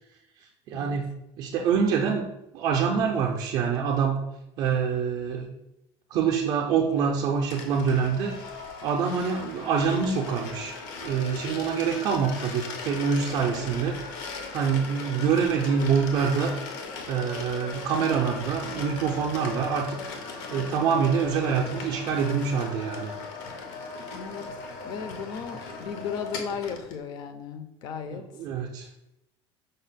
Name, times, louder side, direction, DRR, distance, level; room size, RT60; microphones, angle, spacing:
voice 1, 0.7-1.1 1.4-2.3 2.5-4.2 4.6-5.5 6.1-8.6 8.8-14.2 14.5-16.5 17.1-20.0 20.5-23.1 28.3-28.9, right 6 dB, 45° right, 0 dB, 0.4 m, -25 dB
sound 1, 7.5-27.0, left 4 dB, 80° left, 0.7 m, -38 dB
voice 2, 24.1-24.5 24.8-28.3, left 6 dB, 45° left, 8 dB, 0.4 m, -35 dB
5.1 x 2.0 x 4.0 m, 0.89 s
cardioid pair, 175°, 11 cm